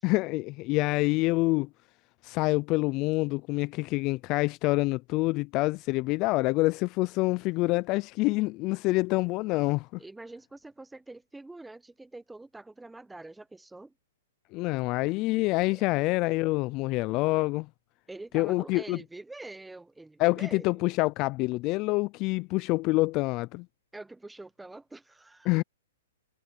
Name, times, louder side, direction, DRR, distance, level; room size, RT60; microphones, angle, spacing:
voice 1, 0.0-1.7 2.2-9.9 14.5-17.7 18.3-19.0 20.2-23.7 25.5-25.6, left 22 dB, 30° left, 0.3 m, -26 dB
voice 2, 10.0-13.9 15.7-15.8 18.1-20.7 23.9-25.5, right 2 dB, 5° right, 1.0 m, -45 dB
hypercardioid pair, 150°, 0 cm